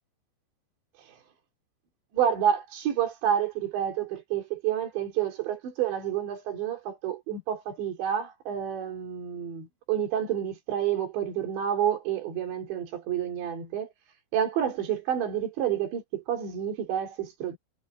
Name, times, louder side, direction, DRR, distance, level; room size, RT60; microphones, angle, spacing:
voice 1, 2.1-13.9 14.3-17.6, right 9 dB, 75° right, 5.7 m, -29 dB
omnidirectional pair, 5.1 m